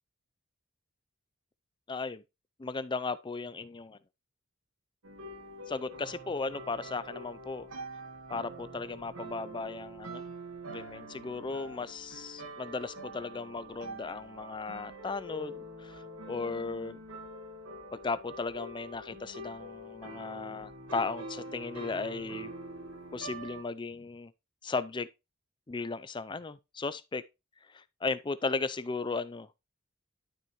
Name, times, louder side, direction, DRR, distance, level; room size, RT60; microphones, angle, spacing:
voice 1, 1.9-2.2 2.6-4.0 5.7-7.7 8.3-10.2 10.7-17.0 17.9-22.5 23.1-24.3 24.6-25.1 25.7-27.2 27.7-29.5, left 4 dB, 20° left, 0.5 m, -36 dB
sound 1, 5.0-23.6, right 1 dB, 90° right, 1.5 m, -45 dB
12.0 x 6.4 x 3.1 m
head